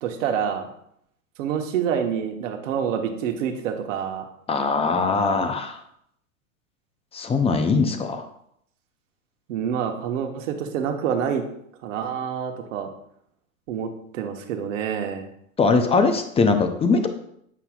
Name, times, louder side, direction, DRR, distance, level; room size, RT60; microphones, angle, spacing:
voice 1, 0.0-0.7 1.4-4.2 9.5-11.4 11.8-12.9 13.7-15.3, right 8 dB, 65° right, 4 dB, 1.2 m, -27 dB
voice 2, 4.5-5.8 7.1-8.3 15.6-17.1, left 4 dB, 15° left, 7 dB, 0.6 m, -21 dB
8.2 x 5.6 x 2.4 m, 0.73 s
hypercardioid pair, 105°, 41 cm